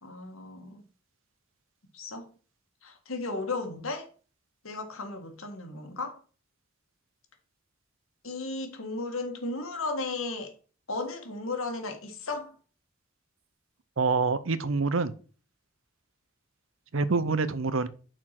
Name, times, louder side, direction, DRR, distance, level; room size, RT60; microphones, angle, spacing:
voice 1, 0.0-0.9 1.9-2.3 2.8-4.1 4.6-6.2 8.2-10.5 10.9-12.6, left 3 dB, 85° left, 1.8 m, -35 dB
voice 2, 14.0-15.1 16.9-17.9, right 4 dB, 70° right, 0.7 m, -26 dB
6.1 x 4.5 x 6.0 m
head